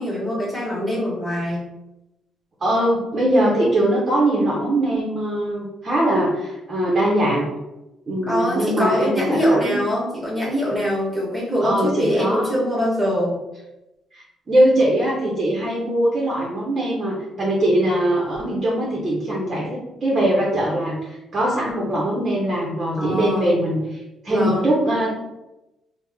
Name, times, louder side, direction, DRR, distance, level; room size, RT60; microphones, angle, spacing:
voice 1, 0.0-1.6 8.3-13.4 23.0-23.5 24.3-24.7, equal, 5° right, -5 dB, 1.2 m, -23 dB
voice 2, 2.6-7.5 8.1-9.8 11.6-12.5 14.1-24.0 24.2-25.1, right 1 dB, 30° right, -4 dB, 0.7 m, -21 dB
3.4 x 2.1 x 3.3 m, 0.95 s
cardioid pair, 140°, 0 cm